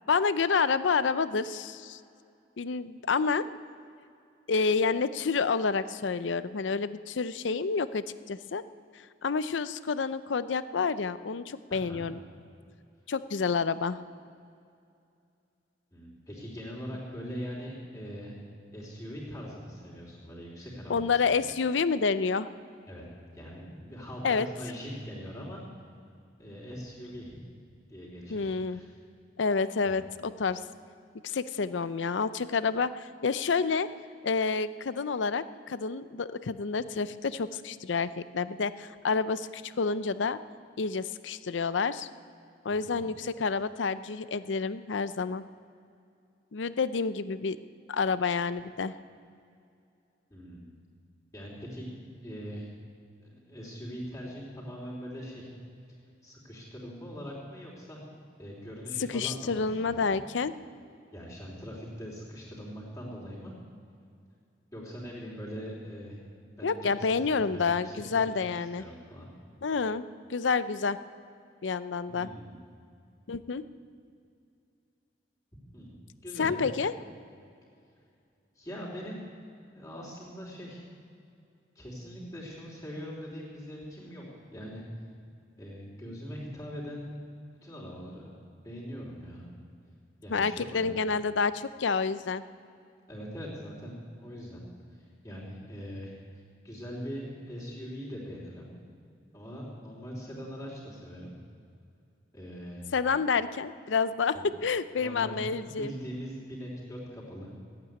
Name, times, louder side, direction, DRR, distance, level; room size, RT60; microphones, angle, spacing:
voice 1, 0.1-2.0 2.6-3.5 4.5-8.6 9.2-12.2 13.1-14.0 20.9-22.5 24.2-24.5 28.3-28.8 29.4-30.6 31.2-33.9 34.2-40.4 40.8-42.1 42.6-45.4 46.5-47.6 47.9-49.0 59.0-60.5 66.6-68.8 69.6-70.0 70.3-71.0 71.6-72.3 73.3-73.6 76.4-76.9 90.3-92.4 102.9-104.3 104.6-105.9, left 5 dB, 90° left, 14 dB, 0.6 m, -29 dB
voice 2, 11.7-12.1 15.9-18.3 18.7-21.4 22.9-23.0 23.3-25.6 26.4-27.4 27.9-28.9 29.8-30.0 42.7-43.1 50.3-50.7 51.3-52.7 53.2-55.5 56.2-58.0 58.4-60.2 61.1-63.5 64.7-66.2 66.6-69.3 72.1-72.6 75.7-76.6 78.5-79.2 79.7-80.8 81.7-85.1 85.6-87.1 87.6-88.4 88.6-89.4 90.2-90.8 93.1-94.6 94.9-98.7 99.3-101.3 102.3-102.8 104.3-104.4 105.0-107.5, equal, 20° left, -5 dB, 3.3 m, -42 dB
14.0 x 9.0 x 9.5 m, 2.5 s
head